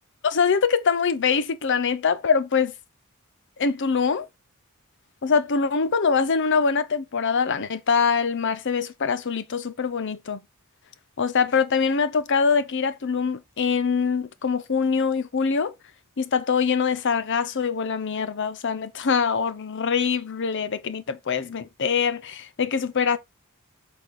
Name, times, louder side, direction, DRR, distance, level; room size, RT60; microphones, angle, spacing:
voice 1, 0.2-2.7 3.6-4.3 5.2-10.4 11.2-15.7 16.2-23.2, left 5 dB, 55° left, 0.7 m, -23 dB
7.8 x 3.7 x 4.1 m
head